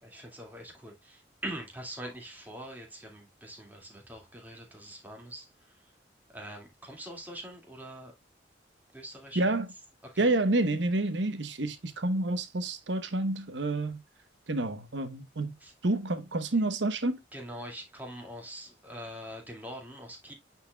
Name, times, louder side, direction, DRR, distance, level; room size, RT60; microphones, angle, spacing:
voice 1, 0.0-5.7 6.3-8.1 8.9-9.6 10.0-10.3 15.6-15.7 17.3-20.3, right 1 dB, 10° right, 2.1 m, -43 dB
voice 2, 9.3-9.7 10.2-14.0 14.5-15.6 15.8-17.2, right 2 dB, 80° right, 1.0 m, -29 dB
9.5 x 4.4 x 2.2 m
head